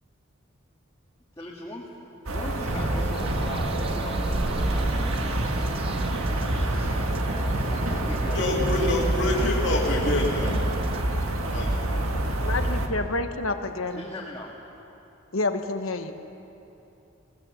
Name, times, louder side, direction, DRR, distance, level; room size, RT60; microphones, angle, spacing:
voice 1, 1.4-1.9 2.3-5.6 6.4-8.6 9.3-10.6 12.4-12.6 13.9-14.6, left 1 dB, 15° left, -5 dB, 1.8 m, -40 dB
sound 1, 2.3-12.9, right 1 dB, 90° right, 1.7 m, -27 dB
sound 2, 2.7-11.1, right 3 dB, 25° right, 0.3 m, -33 dB
voice 2, 8.3-10.6 11.5-11.8, left 2 dB, 60° left, -3 dB, 2.4 m, -26 dB
voice 3, 12.4-14.0 15.3-16.1, left 3 dB, 80° left, 7 dB, 1.2 m, -28 dB
21.0 x 18.0 x 7.1 m, 2.9 s
head